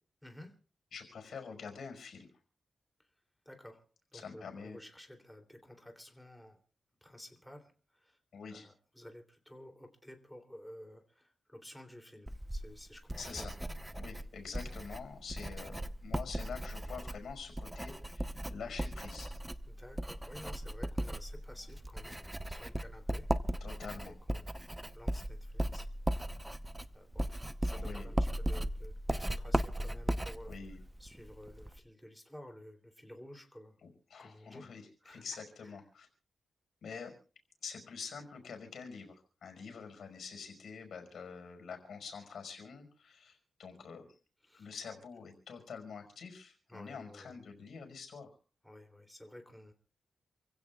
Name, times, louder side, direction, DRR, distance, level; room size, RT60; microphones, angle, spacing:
voice 1, 0.2-0.5 3.0-3.1 3.4-3.8 4.1-6.6 7.0-8.2 8.5-13.5 19.7-23.7 24.0-24.7 24.9-25.9 26.9-30.5 31.0-33.8 34.2-34.7 35.0-35.2 35.6-35.7 44.4-44.7 46.7-47.4 48.6-49.7, left 1 dB, 5° left, 3 dB, 3.1 m, -53 dB
voice 2, 0.9-2.3 4.1-4.8 8.3-8.7 13.2-13.5 13.9-19.3 23.6-24.1 27.7-28.1 30.5-30.8 33.8-36.1 36.8-37.1 37.6-39.2 39.4-44.1 44.5-48.3, left 5 dB, 80° left, 4 dB, 5.3 m, -46 dB
Writing, 12.3-31.8, right 1 dB, 10° right, 0.9 m, -37 dB
28.5 x 16.0 x 2.4 m, 0.40 s
cardioid pair, 90°, 0 cm